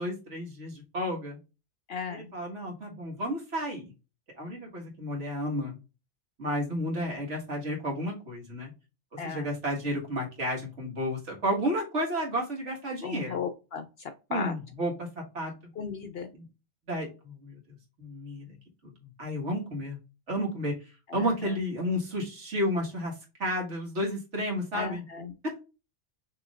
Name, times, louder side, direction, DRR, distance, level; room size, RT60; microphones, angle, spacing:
voice 1, 0.0-1.4 2.1-3.9 4.4-5.8 6.4-8.7 9.1-13.4 14.3-15.5 16.3-16.5 16.9-18.6 18.8-20.0 20.3-20.7 21.1-23.1 23.4-25.1 25.4-25.6, equal, 60° right, -1 dB, 2.0 m, -32 dB
voice 2, 1.9-2.3 9.2-9.5 13.0-14.5 15.8-16.3 21.1-21.5 24.7-25.3, left 6 dB, 60° left, 8 dB, 0.7 m, -36 dB
6.2 x 3.1 x 2.4 m, 0.29 s
omnidirectional pair, 1.4 m